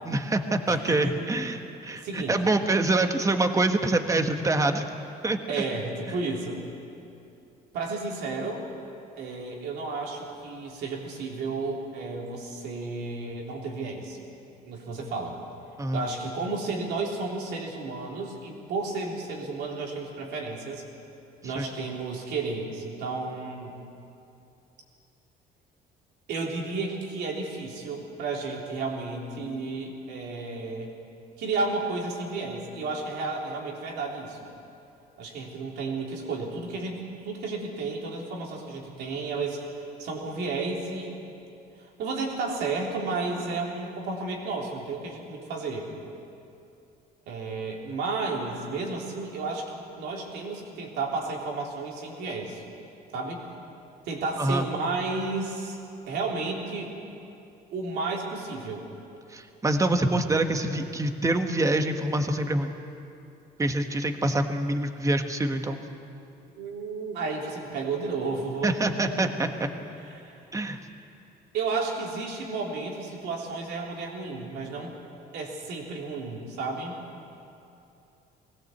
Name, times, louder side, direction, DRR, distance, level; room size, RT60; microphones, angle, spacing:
voice 1, 0.0-4.9 5.2-5.4 15.8-16.0 21.4-21.7 54.4-54.6 59.3-62.7 63.6-65.8 68.6-69.7 70.5-70.8, right 2 dB, 20° right, 6 dB, 1.4 m, -25 dB
voice 2, 0.7-1.2 2.0-2.3 5.5-6.6 7.7-8.6 9.2-14.2 14.7-15.3 15.9-20.8 21.4-23.8 26.3-31.0 31.4-34.4 35.2-39.6 40.0-41.2 42.0-45.9 47.3-52.6 53.1-53.4 54.1-55.8 56.1-57.1 57.7-58.8 66.6-69.3 70.2-70.4 71.5-74.9 75.3-77.0, right 3 dB, 80° right, -1 dB, 3.6 m, -32 dB
20.5 x 17.0 x 8.0 m, 2.7 s
cardioid pair, 110°, 17 cm